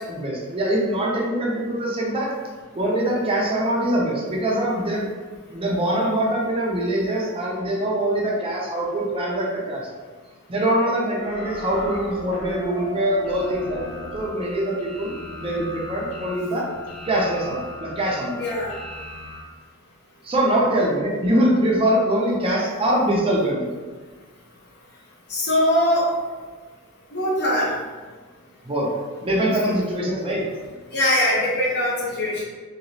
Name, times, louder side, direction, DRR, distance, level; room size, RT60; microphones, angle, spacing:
voice 1, 0.1-2.3 2.7-5.1 5.5-9.8 10.5-13.8 14.1-16.7 17.1-18.4 20.2-23.7 28.6-28.9 29.2-30.4, right 1 dB, 25° right, -3 dB, 0.5 m, -23 dB
sound 1, 11.2-19.4, left 1 dB, 80° left, 0.7 m, -37 dB
voice 2, 18.4-18.7 25.3-26.1 27.1-27.7 29.6-29.7 30.9-32.4, left 1 dB, 55° left, -5 dB, 0.8 m, -21 dB
3.0 x 2.9 x 2.7 m, 1.4 s
head